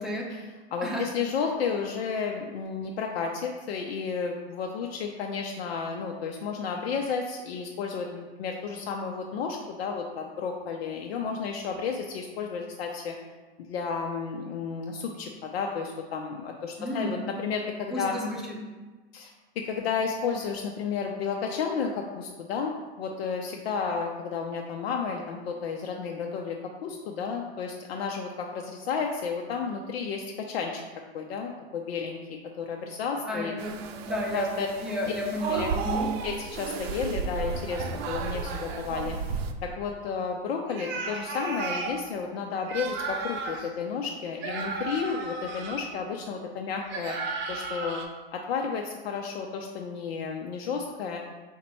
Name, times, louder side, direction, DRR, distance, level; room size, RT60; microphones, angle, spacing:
voice 1, 0.3-13.2 13.7-18.2 19.1-26.6 26.8-30.8 31.1-32.2 32.6-33.5 34.3-34.7 35.5-35.7 36.2-47.2 47.5-48.0 48.3-51.2, left 5 dB, 75° left, 1 dB, 0.5 m, -32 dB
voice 2, 16.8-17.2 17.9-18.4 33.3-33.7 34.0-34.5 34.8-36.1, left 1 dB, ahead, -4 dB, 0.7 m, -31 dB
sound 1, 33.6-39.5, right 5 dB, 75° right, 0.5 m, -33 dB
sound 2, 40.7-42.0 42.6-43.7 44.4-45.8 46.9-48.0, right 3 dB, 35° right, 0.7 m, -34 dB
5.0 x 2.2 x 4.3 m, 1.3 s
hypercardioid pair, 125°, 31 cm